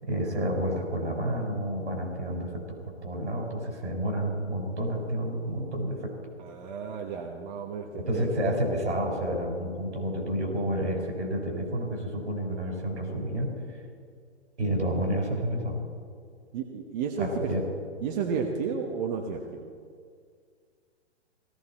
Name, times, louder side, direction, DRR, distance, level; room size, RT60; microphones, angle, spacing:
voice 1, 0.0-6.1 8.0-13.5 14.6-15.8 17.2-17.6, right 1 dB, 80° right, 2 dB, 4.7 m, -30 dB
voice 2, 6.4-8.3 16.5-17.5 18.0-19.7, right 6 dB, 40° right, 2 dB, 1.3 m, -32 dB
17.5 x 14.0 x 4.3 m, 2.1 s
hypercardioid pair, 130°, 34 cm